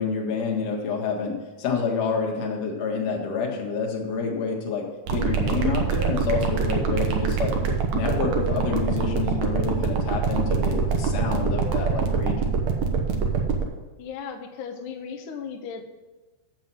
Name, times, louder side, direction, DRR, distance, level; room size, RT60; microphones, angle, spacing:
voice 1, 0.0-4.8 5.1-7.5 7.9-12.4, left 5 dB, 60° left, 0 dB, 2.5 m, -28 dB
sound 1, 5.1-13.6, right 5 dB, 65° right, 2.1 m, -24 dB
voice 2, 14.0-15.8, left 6 dB, 75° left, 3 dB, 2.2 m, -36 dB
7.5 x 7.4 x 7.5 m, 1.2 s
omnidirectional pair, 3.8 m